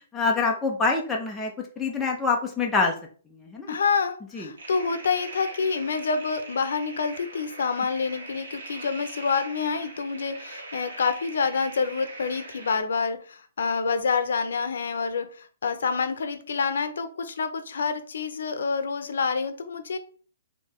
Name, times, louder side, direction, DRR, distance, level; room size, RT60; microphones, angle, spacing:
voice 1, 0.1-2.9 3.3-3.7 4.3-4.5, left 4 dB, 5° left, -1 dB, 0.3 m, -26 dB
voice 2, 3.7-20.0, left 5 dB, 70° left, 9 dB, 0.5 m, -27 dB
sound 1, 4.6-12.8, right 2 dB, 75° right, 1.2 m, -42 dB
3.1 x 2.6 x 3.5 m, 0.42 s
hypercardioid pair, 180°, 0 cm